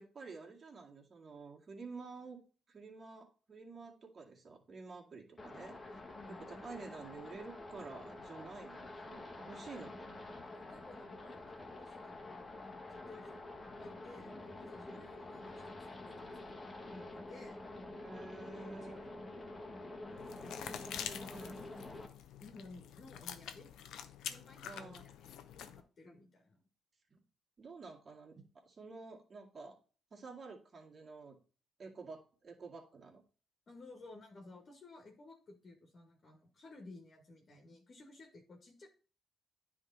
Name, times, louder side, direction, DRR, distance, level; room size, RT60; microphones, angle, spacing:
voice 1, 0.0-2.4 2.7-6.0 6.5-10.2 13.1-13.2 14.9-15.1 18.0-19.0 21.3-21.7 24.6-25.0 26.1-26.2 27.1-27.2 27.6-29.8 30.1-31.4 31.8-33.2, right 4 dB, 40° right, -1 dB, 2.2 m, -50 dB
sound 1, 5.4-22.1, left 2 dB, 25° left, 1.5 m, -48 dB
voice 2, 6.1-6.4 10.5-17.6 18.5-19.5 20.0-23.7 24.3-26.6 33.7-38.9, left 2 dB, 45° left, 2 dB, 1.8 m, -56 dB
sound 2, 20.2-25.8, left 9 dB, 85° left, 0.7 m, -47 dB
9.9 x 3.7 x 4.0 m, 0.38 s
cardioid pair, 90°, 0 cm